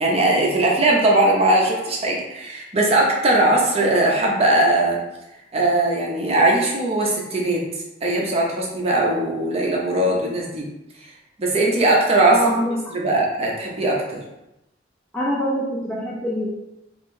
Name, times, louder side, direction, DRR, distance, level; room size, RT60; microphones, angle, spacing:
voice 1, 0.0-5.0 5.5-7.7 8.0-10.7 11.4-12.5 12.9-14.2, right 2 dB, 35° right, -1 dB, 0.7 m, -19 dB
voice 2, 12.3-12.9 15.1-16.5, equal, 5° left, -5 dB, 0.4 m, -24 dB
3.0 x 2.5 x 3.7 m, 0.89 s
head